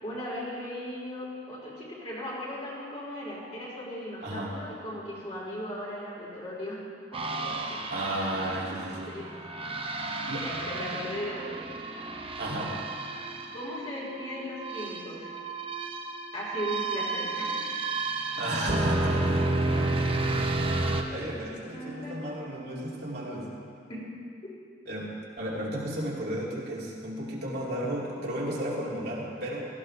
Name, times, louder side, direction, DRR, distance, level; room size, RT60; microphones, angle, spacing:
voice 1, 0.0-6.8 7.1-7.8 9.1-9.4 9.7-9.9 10.4-11.7 13.5-15.3 16.3-17.7 21.7-22.3 23.9-24.0 24.4-24.5, left 1 dB, 35° left, -6 dB, 4.0 m, -37 dB
voice 2, 4.2-4.5 7.9-9.2 10.3-10.5 12.4-12.9 18.4-19.5 21.1-23.5 24.9-29.7, right 1 dB, 60° right, -5 dB, 2.7 m, -33 dB
sound 1, 7.1-21.0, right 2 dB, 30° right, 0.9 m, -32 dB
17.0 x 14.5 x 3.4 m, 2.4 s
head